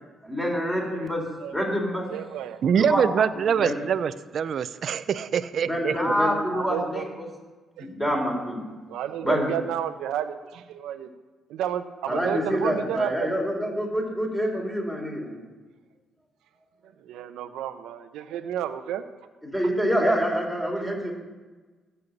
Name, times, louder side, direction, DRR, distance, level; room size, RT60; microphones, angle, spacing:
voice 1, 0.2-1.2 1.5-2.1 2.7-3.8 5.6-7.3 7.8-8.6 9.2-9.5 12.1-15.4 19.4-21.1, equal, 10° left, -1 dB, 4.1 m, -26 dB
voice 2, 2.1-2.9 6.5-7.1 7.8-7.9 8.9-11.1 11.5-13.3 17.0-19.0, right 10 dB, 90° right, 9 dB, 0.8 m, -32 dB
voice 3, 2.6-6.0, right 7 dB, 60° right, 13 dB, 0.6 m, -24 dB
15.0 x 5.7 x 8.0 m, 1.3 s
cardioid pair, 90°, 0 cm